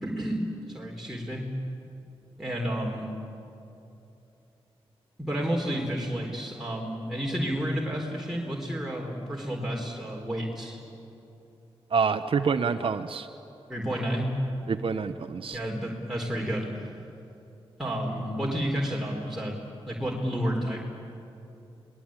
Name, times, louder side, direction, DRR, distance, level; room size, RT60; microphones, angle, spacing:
voice 1, 0.0-1.4 2.4-3.1 5.2-10.8 13.7-14.3 15.5-16.7 17.8-19.6 19.9-20.8, equal, 5° right, -3 dB, 4.2 m, -31 dB
voice 2, 11.9-13.3 14.7-15.6, right 5 dB, 60° right, 7 dB, 0.9 m, -27 dB
26.5 x 20.0 x 9.0 m, 2.8 s
cardioid pair, 55°, 10 cm